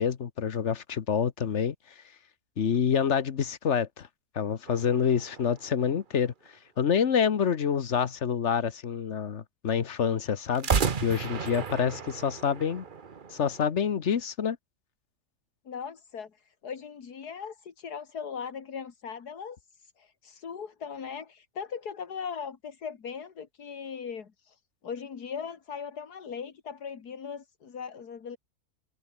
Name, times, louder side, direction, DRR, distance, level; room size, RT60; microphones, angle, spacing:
voice 1, 0.0-1.7 2.6-4.1 4.3-6.3 6.8-10.7 11.0-12.8 13.3-14.6, left 7 dB, 50° left, 1.3 m, -27 dB
sound 1, 4.7-6.5 10.5-13.6, right 6 dB, 35° right, 1.1 m, -33 dB
voice 2, 15.7-28.4, left 6 dB, 80° left, 2.4 m, -39 dB
omnidirectional pair, 1.7 m